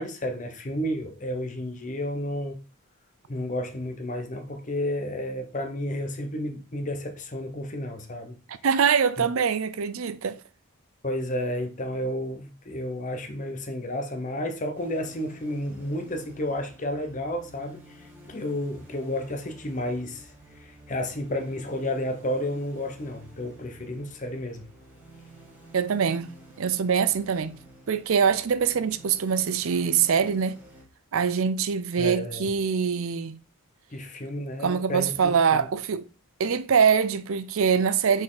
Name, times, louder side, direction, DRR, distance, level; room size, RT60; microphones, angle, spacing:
voice 1, 0.0-2.6 3.3-8.4 11.0-24.6 32.0-32.4 33.9-35.7, left 1 dB, 35° left, 0.8 m, -31 dB
voice 2, 8.5-10.4 25.7-27.6 27.9-30.6 31.1-33.4 34.6-36.1 36.4-38.2, right 6 dB, 65° right, 0.5 m, -24 dB
sound 1, 14.7-30.8, right 1 dB, 10° right, 1.6 m, -51 dB
6.1 x 4.3 x 3.8 m
head